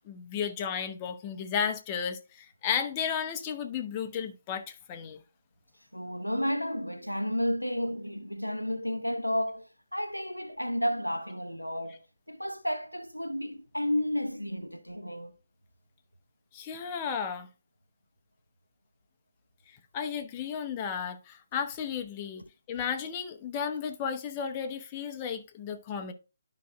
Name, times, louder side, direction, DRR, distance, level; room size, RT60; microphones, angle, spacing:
voice 1, 0.0-5.2 16.5-17.5 19.7-22.4 22.7-26.1, left 7 dB, 25° left, 0.8 m, -33 dB
voice 2, 5.9-12.0 12.3-15.3, equal, 90° left, 0.7 m, -32 dB
12.0 x 5.2 x 2.2 m
figure-of-eight pair, 140°, 0 cm